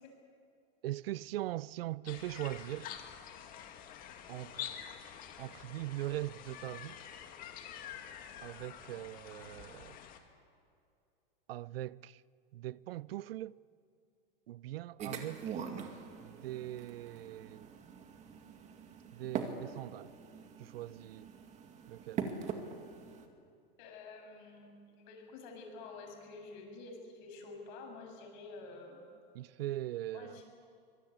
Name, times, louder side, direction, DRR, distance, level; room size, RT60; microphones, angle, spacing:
voice 1, 0.8-2.9 4.3-4.8 5.4-7.0 8.4-10.0 11.5-12.2 12.5-13.6 14.5-15.6 16.2-17.7 19.1-20.1 20.6-21.3 21.9-22.3 29.3-30.4, right 15 dB, 75° right, 0.6 m, -41 dB
sound 1, 2.1-10.2, left 9 dB, 30° left, 2.1 m, -47 dB
sound 2, 15.0-23.3, right 6 dB, 25° right, 2.1 m, -43 dB
voice 2, 23.8-29.0 30.1-30.4, left 3 dB, 50° left, 7.7 m, -49 dB
25.0 x 21.0 x 8.8 m
supercardioid pair, 155°, 29 cm